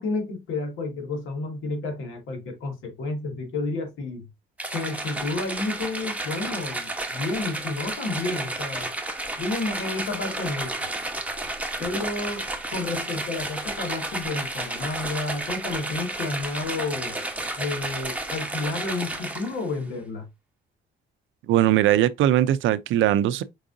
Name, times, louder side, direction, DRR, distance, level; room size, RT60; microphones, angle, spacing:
voice 1, 0.0-4.3 4.7-8.9 9.4-10.8 11.8-12.4 12.7-17.2 17.6-20.3, left 3 dB, 85° left, 1.7 m, -31 dB
sound 1, 4.6-19.7, right 2 dB, 5° right, 1.0 m, -32 dB
voice 2, 21.5-23.4, right 12 dB, 80° right, 0.4 m, -20 dB
4.7 x 3.6 x 2.5 m
cardioid pair, 90°, 20 cm